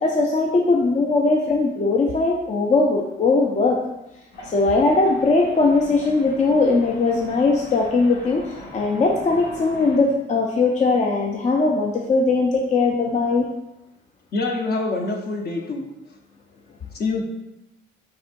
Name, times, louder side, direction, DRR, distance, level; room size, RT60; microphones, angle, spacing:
voice 1, 0.0-3.8 4.4-13.5, left 3 dB, 35° left, 0 dB, 0.5 m, -20 dB
sound 1, 4.3-10.0, left 1 dB, 70° left, 1.6 m, -41 dB
voice 2, 14.3-15.9 16.9-17.2, left 3 dB, 55° left, 2 dB, 0.9 m, -25 dB
4.5 x 4.1 x 2.5 m, 0.92 s
cardioid pair, 90°, 20 cm